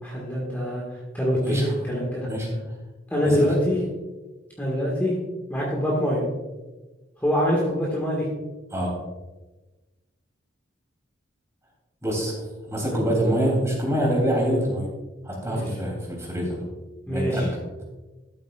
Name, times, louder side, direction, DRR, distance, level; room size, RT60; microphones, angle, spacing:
voice 1, 0.0-0.8 1.1-2.3 3.1-3.8 4.6-5.1 5.5-6.2 7.2-8.3 12.9-13.0 15.5-15.6 17.1-17.5, equal, 10° left, -5 dB, 1.8 m, -24 dB
voice 2, 12.0-12.4 12.7-14.9 15.2-16.6 17.1-17.8, equal, 15° right, -2 dB, 3.1 m, -25 dB
13.0 x 8.2 x 2.5 m, 1.2 s
head